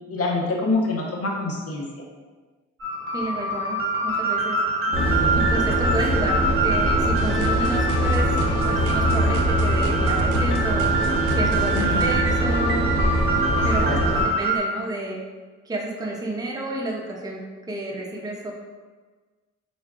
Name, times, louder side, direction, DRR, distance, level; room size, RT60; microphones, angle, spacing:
voice 1, 0.1-1.9 4.9-5.4 11.7-12.2 13.5-14.3, left 2 dB, 50° left, 0 dB, 0.8 m, -27 dB
sound 1, 2.8-14.6, right 2 dB, 45° right, 1.1 m, -25 dB
voice 2, 3.1-4.6 5.3-8.3 8.6-13.0 13.6-15.2 15.6-17.4 17.7-18.5, right 1 dB, 15° right, -2 dB, 0.6 m, -30 dB
sound 2, 4.9-14.2, equal, 20° left, 0.9 m, -23 dB
sound 3, 7.1-12.2, right 3 dB, 85° right, 0.5 m, -35 dB
3.8 x 2.3 x 3.6 m, 1.4 s
cardioid pair, 90°, 30 cm